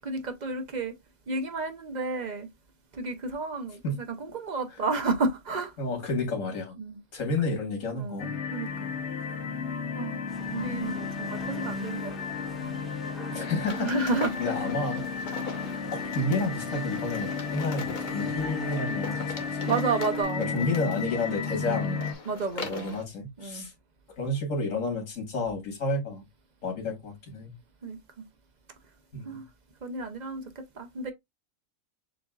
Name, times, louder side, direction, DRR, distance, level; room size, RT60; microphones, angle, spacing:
voice 1, 0.0-0.9 1.3-2.5 2.9-5.7 6.8-7.0 7.9-8.9 10.0-10.2 10.5-12.2 13.8-14.5 19.7-20.8 21.7-23.0 23.4-23.7 27.8-28.2 29.2-29.4 29.8-31.1, right 3 dB, 40° right, 0.7 m, -32 dB
voice 2, 5.8-6.7 7.1-8.4 13.3-13.9 14.4-15.0 15.9-19.8 20.4-22.0 22.6-23.7 24.2-26.2 26.6-27.5 29.1-29.4, left 2 dB, 80° left, 1.9 m, -31 dB
sound 1, 8.2-22.1, left 5 dB, 65° left, 1.0 m, -33 dB
sound 2, 10.3-20.2, right 1 dB, ahead, 1.1 m, -46 dB
sound 3, 13.6-23.0, left 4 dB, 45° left, 0.9 m, -41 dB
6.9 x 2.6 x 2.3 m
omnidirectional pair, 1.3 m